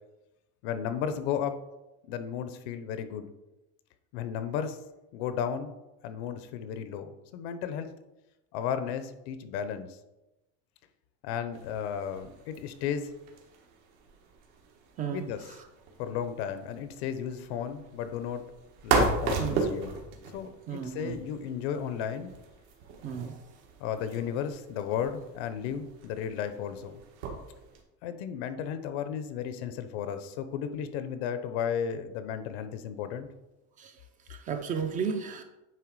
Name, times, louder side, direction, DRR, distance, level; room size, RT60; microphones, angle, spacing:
voice 1, 0.6-1.6 2.1-3.3 4.1-4.8 5.1-5.7 6.0-7.9 8.5-10.0 11.2-13.1 15.0-15.4 16.0-18.4 18.8-19.9 20.3-22.3 23.8-27.0 28.0-33.3, left 8 dB, 70° left, 10 dB, 0.8 m, -34 dB
sound 1, 11.5-27.8, right 4 dB, 80° right, 1.7 m, -36 dB
voice 2, 15.0-15.6 19.4-19.6 20.7-21.2 23.0-23.5 33.8-34.0 34.3-35.4, right 7 dB, 25° right, 7 dB, 0.4 m, -34 dB
9.1 x 3.4 x 4.7 m, 0.97 s
cardioid pair, 170°, 33 cm